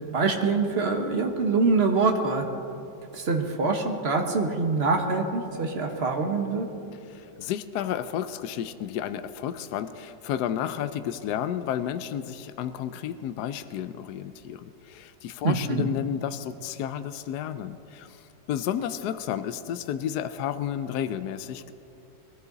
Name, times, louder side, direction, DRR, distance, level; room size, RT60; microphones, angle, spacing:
voice 1, 0.1-2.4 3.1-6.7 15.4-15.9, right 4 dB, 35° right, 3 dB, 1.4 m, -25 dB
voice 2, 7.1-21.7, left 10 dB, 70° left, 11 dB, 1.0 m, -32 dB
21.5 x 14.5 x 4.0 m, 2.8 s
omnidirectional pair, 2.1 m